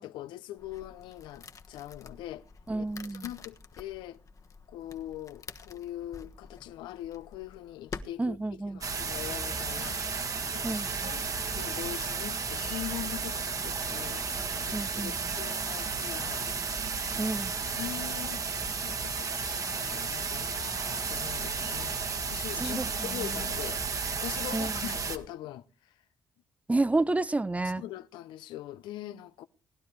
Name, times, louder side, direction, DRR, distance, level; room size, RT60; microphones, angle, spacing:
voice 1, 0.0-2.4 2.8-2.9 3.1-4.2 4.7-8.4 8.7-10.0 10.5-11.2 11.6-14.3 14.6-16.5 17.8-23.8 24.2-25.9 27.8-29.4, left 13 dB, 80° left, 0.7 m, -42 dB
sound 1, 0.6-8.0, left 4 dB, 45° left, 1.3 m, -48 dB
voice 2, 2.7-3.3 8.2-8.8 10.6-11.2 14.7-15.3 17.2-17.6 22.6-23.5 24.5-24.9 26.7-27.8, right 2 dB, 20° right, 0.6 m, -31 dB
sound 2, 8.8-25.2, right 5 dB, 45° right, 1.9 m, -33 dB
19.5 x 11.5 x 3.2 m
supercardioid pair, 55°, 8 cm